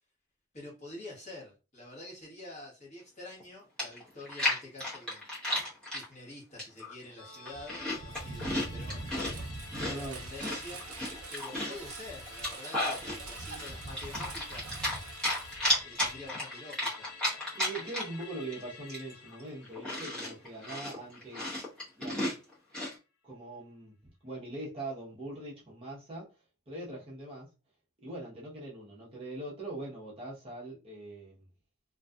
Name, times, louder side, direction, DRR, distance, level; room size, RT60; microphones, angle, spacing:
voice 1, 0.5-5.3 5.9-9.1 9.9-10.8 11.3-15.0 15.8-17.1, left 2 dB, 30° left, 1.0 m, -47 dB
Chewing mastication, 3.4-3.5 3.8-6.1 6.6-6.9 7.3-9.3 9.7-11.8 12.3-13.2 13.6-15.0 15.2-18.2 18.5-18.6 18.9-22.9, left 1 dB, 5° left, 0.8 m, -33 dB
Musical instrument, 7.2-21.9 22.2-22.3, left 4 dB, 90° left, 0.6 m, -50 dB
Engine, 7.5-16.3, right 3 dB, 75° right, 0.6 m, -43 dB
voice 2, 9.7-10.2 17.5-21.5 22.0-22.2 23.2-26.3 26.7-27.5 28.0-31.3, right 2 dB, 25° right, 0.7 m, -42 dB
2.6 x 2.3 x 2.3 m
head